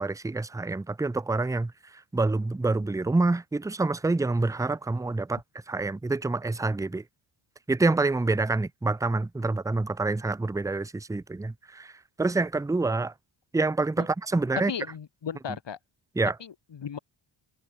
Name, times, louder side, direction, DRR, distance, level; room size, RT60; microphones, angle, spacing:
voice 1, 0.0-1.7 2.1-7.0 7.7-11.9 12.2-13.1 13.5-14.7 16.2-16.4, right 3 dB, 5° right, 0.5 m, -27 dB
voice 2, 14.7-15.8 16.4-17.0, left 7 dB, 60° left, 4.0 m, -36 dB
cardioid pair, 95°, 50 cm